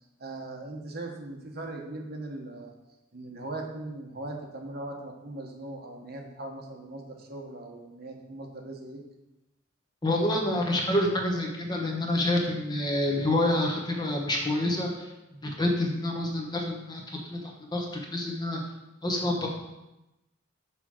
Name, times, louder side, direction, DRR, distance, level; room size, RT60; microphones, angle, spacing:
voice 1, 0.2-2.7 3.1-9.0, right 2 dB, 50° right, 1 dB, 1.1 m, -39 dB
voice 2, 10.0-15.1 15.4-17.4 17.7-18.6 19.0-19.5, left 1 dB, 20° left, 0 dB, 1.1 m, -27 dB
6.0 x 4.9 x 6.4 m, 0.96 s
head